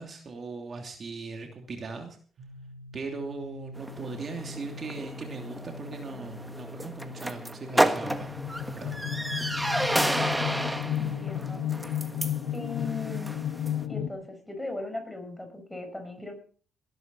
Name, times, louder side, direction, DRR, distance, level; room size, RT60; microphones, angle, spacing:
voice 1, 0.0-2.2 2.9-8.3 8.7-8.9, right 4 dB, 45° right, 3 dB, 2.9 m, -39 dB
sound 1, 2.4-12.2, left 1 dB, 70° right, 3.1 m, -45 dB
sound 2, 3.8-13.8, right 1 dB, 10° right, 1.4 m, -31 dB
sound 3, 8.0-14.1, left 10 dB, 85° left, 1.4 m, -33 dB
voice 2, 11.0-12.0 12.5-13.4 13.9-16.4, left 2 dB, 10° left, 5 dB, 5.7 m, -38 dB
19.0 x 12.0 x 4.1 m, 0.42 s
cardioid pair, 90°, 0 cm